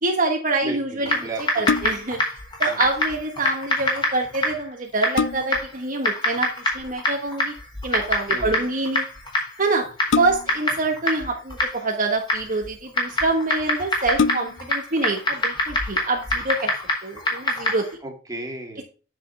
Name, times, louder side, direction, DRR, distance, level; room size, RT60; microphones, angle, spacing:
voice 1, 0.0-1.2 1.5-2.2 2.6-7.5 7.8-9.0 9.6-9.8 10.2-16.7 17.0-17.8, right 3 dB, 45° right, 2 dB, 1.3 m, -25 dB
voice 2, 0.6-1.9 2.7-2.9 8.3-8.7 18.0-18.8, right 2 dB, 20° right, 1 dB, 2.3 m, -35 dB
Typing, 1.0-17.9, left 1 dB, 25° left, 3.8 m, -26 dB
sound 1, 1.4-2.2 4.2-4.3 4.8-5.7 7.3-7.6 10.1-10.7 11.7-12.4 13.1-13.2 13.5-13.6 14.1-14.8 15.3-15.4, left 5 dB, 70° left, 0.5 m, -26 dB
9.7 x 6.9 x 3.3 m, 0.37 s
head